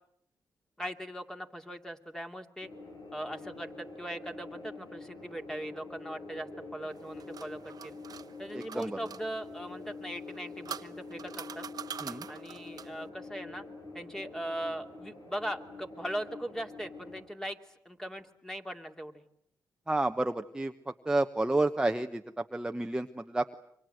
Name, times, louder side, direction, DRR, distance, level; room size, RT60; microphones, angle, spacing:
voice 1, 0.8-2.7 3.1-8.0 8.4-11.6 12.3-13.6 13.9-17.6 17.8-19.2, right 1 dB, 5° left, 4 dB, 2.7 m, -39 dB
sound 1, 2.6-17.2, left 3 dB, 70° left, 7.5 m, -46 dB
sound 2, 6.9-9.2 10.2-13.0, right 8 dB, 65° right, 1.1 m, -44 dB
voice 2, 8.5-9.0 12.0-12.3 19.9-23.5, right 2 dB, 10° right, 6 dB, 1.1 m, -30 dB
28.5 x 25.0 x 7.9 m, 0.72 s
cardioid pair, 75°, 7 cm